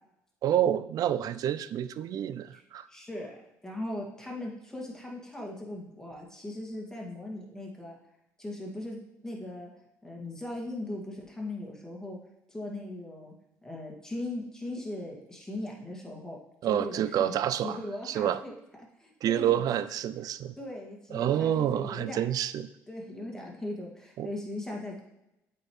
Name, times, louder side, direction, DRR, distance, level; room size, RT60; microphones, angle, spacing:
voice 1, 0.4-2.9 16.6-17.8 18.1-18.4 19.2-20.5 21.1-22.7 24.2-24.3, right 10 dB, 60° right, 14 dB, 0.4 m, -28 dB
voice 2, 2.9-3.3 3.6-8.0 8.4-9.0 9.2-9.7 10.0-12.2 12.5-13.3 13.6-17.4 17.6-18.5 19.0-19.6 20.6-22.3 22.9-25.0, left 1 dB, 10° left, -2 dB, 2.1 m, -39 dB
8.2 x 4.6 x 3.2 m, 0.88 s
hypercardioid pair, 60°, 7 cm